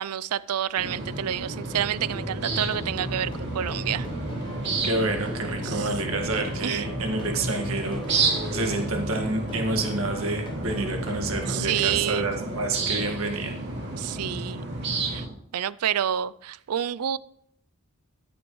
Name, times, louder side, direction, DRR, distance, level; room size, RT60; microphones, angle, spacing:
voice 1, 0.0-4.1 5.6-5.9 6.2-6.8 11.5-12.3 14.0-14.7 15.0-15.3 15.5-17.2, right 10 dB, 90° right, 0.4 m, -29 dB
sound 1, 0.8-15.3, right 3 dB, 50° right, 2.4 m, -31 dB
sound 2, 2.0-12.1, left 1 dB, 20° left, 1.0 m, -36 dB
voice 2, 4.8-8.0 8.5-13.5, right 2 dB, 70° right, 1.8 m, -29 dB
14.0 x 10.0 x 3.2 m
head